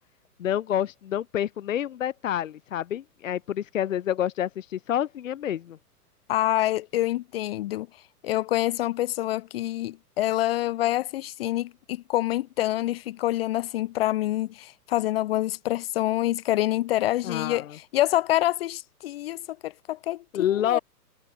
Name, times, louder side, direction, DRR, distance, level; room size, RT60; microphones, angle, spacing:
voice 1, 0.4-5.8 17.2-17.7 20.3-20.8, left 10 dB, 55° left, 0.9 m, -28 dB
voice 2, 6.3-7.9 8.2-20.8, left 15 dB, 40° left, 1.4 m, -26 dB
figure-of-eight pair, 120°, 47 cm